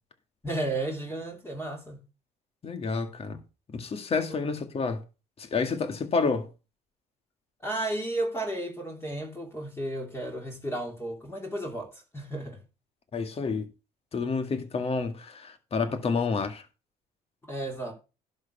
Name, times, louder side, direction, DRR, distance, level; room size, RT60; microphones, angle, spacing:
voice 1, 0.4-2.0 4.4-4.5 7.6-12.6 17.5-17.9, right 1 dB, 15° left, 3.1 m, -33 dB
voice 2, 2.6-3.4 3.7-5.0 5.4-6.5 13.1-13.7 14.1-16.6, left 4 dB, 35° left, 1.9 m, -29 dB
11.0 x 6.7 x 5.7 m
cardioid pair, 110°, 17 cm